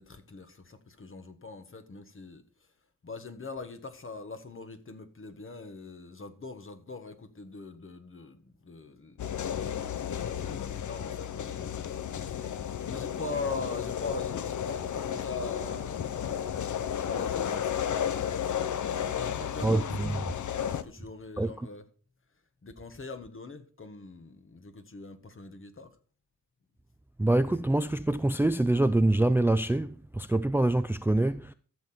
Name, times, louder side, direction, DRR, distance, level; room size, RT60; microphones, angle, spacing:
voice 1, 0.0-2.7 3.0-11.7 12.0-12.5 12.9-16.5 17.0-17.8 18.3-20.1 20.6-21.8 22.6-26.0, left 3 dB, 45° left, 1.6 m, -42 dB
sound 1, 9.2-20.8, left 9 dB, 75° left, 0.7 m, -33 dB
voice 2, 19.6-20.1 21.4-21.5 27.2-31.5, right 1 dB, 5° right, 0.4 m, -25 dB
14.0 x 6.9 x 4.4 m
wide cardioid pair, 85°, 30 cm